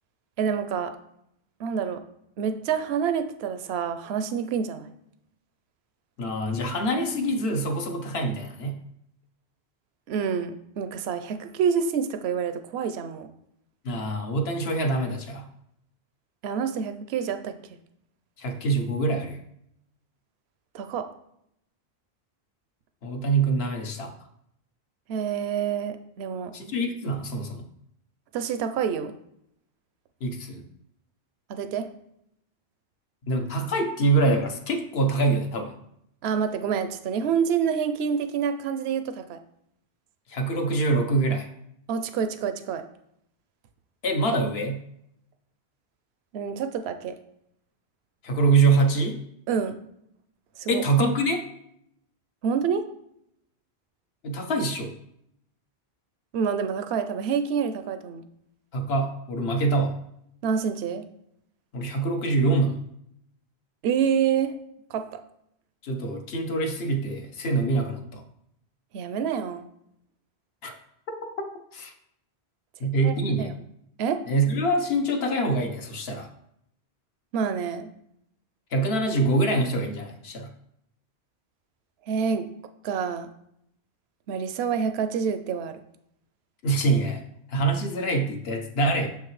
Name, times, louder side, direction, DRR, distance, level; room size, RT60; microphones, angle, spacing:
voice 1, 0.4-0.9 1.6-2.0 2.4-4.9 10.1-13.3 16.4-17.5 20.7-21.1 25.1-26.5 28.3-29.1 31.5-31.9 36.2-39.4 41.9-42.8 46.3-47.2 49.5-49.8 50.6-50.8 52.4-52.8 56.3-58.3 60.4-61.0 63.8-64.5 64.9-65.2 68.9-69.7 73.0-73.6 74.0-74.2 77.3-77.9 82.1-82.5 82.8-83.3 84.3-85.8, right 7 dB, 80° right, 9 dB, 0.8 m, -27 dB
voice 2, 6.2-8.8 13.8-15.4 18.4-19.4 23.0-24.1 26.5-27.7 30.2-30.6 33.3-35.8 40.3-41.5 44.0-44.8 48.2-49.2 50.7-51.4 54.2-54.9 58.7-59.9 61.7-62.8 65.8-68.2 70.6-70.7 71.1-71.2 71.7-71.9 72.8-73.5 74.3-76.3 78.7-80.5 86.6-87.2 87.5-89.1, right 2 dB, 75° left, 4 dB, 1.1 m, -25 dB
6.5 x 5.7 x 3.1 m, 0.75 s
omnidirectional pair, 1.1 m